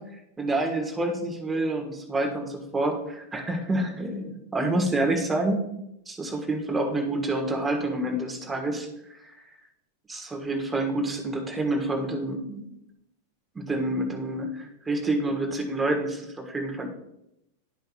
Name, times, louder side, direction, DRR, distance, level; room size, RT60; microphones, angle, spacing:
voice 1, 0.4-5.6 6.1-8.9 10.1-12.8 13.5-16.9, right 2 dB, 10° right, 1 dB, 1.5 m, -28 dB
12.0 x 5.3 x 2.4 m, 0.83 s
figure-of-eight pair, 90°, 0 cm